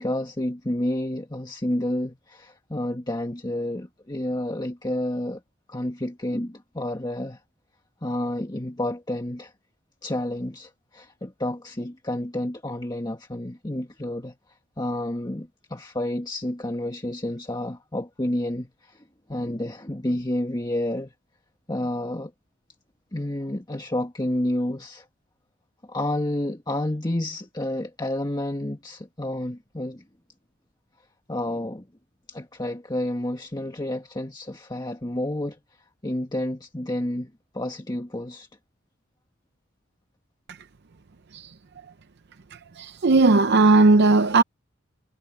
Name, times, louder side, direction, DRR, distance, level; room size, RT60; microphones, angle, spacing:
voice 1, 0.0-5.4 5.7-7.4 8.0-9.5 10.0-14.3 14.8-19.0 19.3-21.1 21.7-22.3 23.1-25.1 25.8-30.0 31.3-31.9 32.3-35.6 36.0-38.5, left 1 dB, 20° left, 1.5 m, -30 dB
voice 2, 42.5-44.4, right 3 dB, 55° right, 0.6 m, -17 dB
head